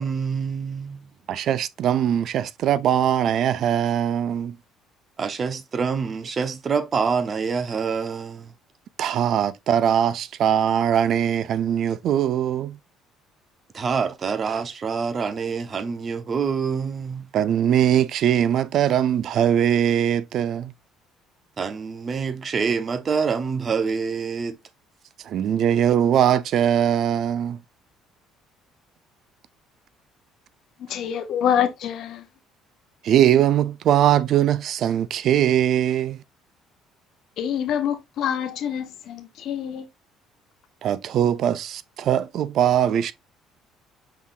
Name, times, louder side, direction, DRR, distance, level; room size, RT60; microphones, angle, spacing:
voice 1, 0.0-1.1 5.2-8.5 13.7-17.3 21.6-24.6, right 5 dB, 40° right, 0.8 m, -26 dB
voice 2, 1.3-4.5 9.0-12.8 17.3-20.7 25.3-27.6 33.0-36.2 40.8-43.1, right 10 dB, 60° right, 0.4 m, -21 dB
voice 3, 30.8-32.3 37.4-39.9, left 9 dB, 65° left, 0.7 m, -26 dB
5.7 x 3.5 x 2.4 m
supercardioid pair, 90°, 0 cm